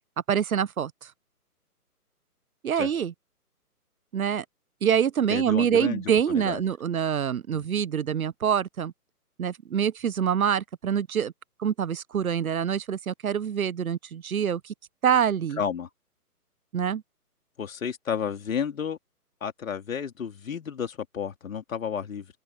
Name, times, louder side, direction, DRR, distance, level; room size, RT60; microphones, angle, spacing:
voice 1, 0.3-1.1 2.6-3.1 4.1-4.4 4.8-8.9 9.4-11.3 11.6-14.7 15.0-15.6 16.7-17.0, right 8 dB, 65° right, 0.8 m, -25 dB
voice 2, 5.3-6.6 7.5-7.6 15.6-15.9 17.6-19.0 19.4-22.3, left 7 dB, 55° left, 3.6 m, -32 dB
open air
figure-of-eight pair, 140°, 47 cm